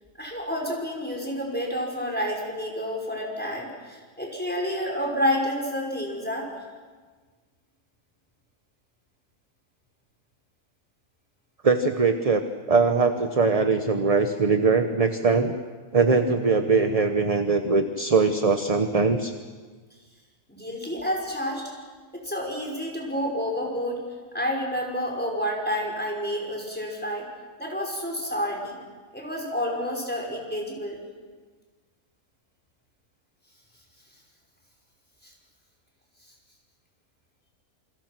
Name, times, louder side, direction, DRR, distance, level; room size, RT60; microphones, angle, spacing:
voice 1, 0.2-6.5 20.5-21.7 22.1-24.0 24.3-27.3 27.6-28.8 29.1-31.0 35.2-35.3, equal, 5° left, -1 dB, 5.6 m, -29 dB
voice 2, 11.6-15.6 15.9-19.3, right 4 dB, 30° right, 7 dB, 0.9 m, -21 dB
27.5 x 26.0 x 6.1 m, 1.4 s
omnidirectional pair, 1.7 m